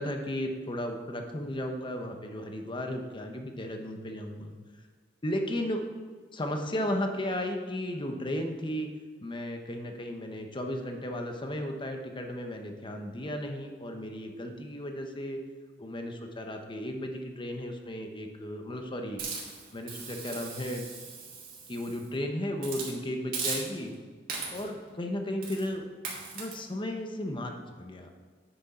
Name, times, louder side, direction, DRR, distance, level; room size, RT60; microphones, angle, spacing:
voice 1, 0.0-4.5 5.2-5.9 6.3-8.9 9.2-15.4 15.8-19.2 19.7-20.9 21.7-23.9 24.5-25.8 26.3-28.1, left 1 dB, 25° left, 4 dB, 0.9 m, -34 dB
Hiss, 19.2-22.1 22.6-22.9 23.3-23.9 24.3-24.8 25.4-25.7 26.0-26.5, right 4 dB, 50° right, 2.4 m, -38 dB
9.7 x 6.3 x 4.3 m, 1.5 s
head